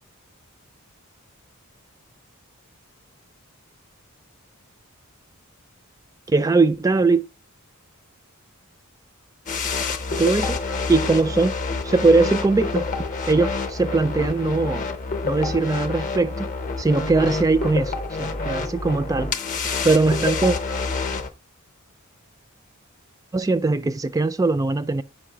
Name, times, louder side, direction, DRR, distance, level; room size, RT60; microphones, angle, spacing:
voice 1, 6.3-7.2 10.1-10.6 10.9-11.5 11.8-12.9 13.3-14.9 15.2-16.5 16.8-19.3 19.8-20.6 23.3-25.0, right 3 dB, 15° right, 0.3 m, -20 dB
sound 1, 9.5-21.3, left 4 dB, 40° left, 0.7 m, -28 dB
5.6 x 5.2 x 5.0 m
head